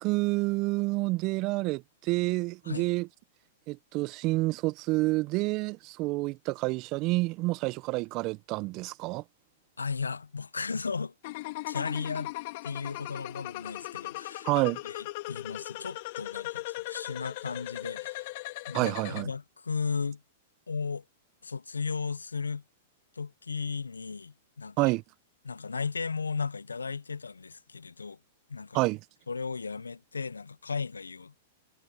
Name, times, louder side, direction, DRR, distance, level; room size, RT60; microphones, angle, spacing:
voice 1, 0.0-3.1 3.7-9.2 14.4-14.8 18.7-19.3 24.8-25.0 28.7-29.0, right 22 dB, 40° right, 1.2 m, -28 dB
voice 2, 9.8-11.1 11.7-12.3 12.6-14.5 14.8-18.3 18.7-20.2 20.7-21.0 21.4-22.6 23.2-24.9 25.4-28.2 28.5-28.8 29.3-31.4, left 5 dB, 85° left, 0.9 m, -35 dB
sound 1, 11.2-19.2, left 21 dB, 55° left, 4.0 m, -38 dB
hypercardioid pair, 105°, 0 cm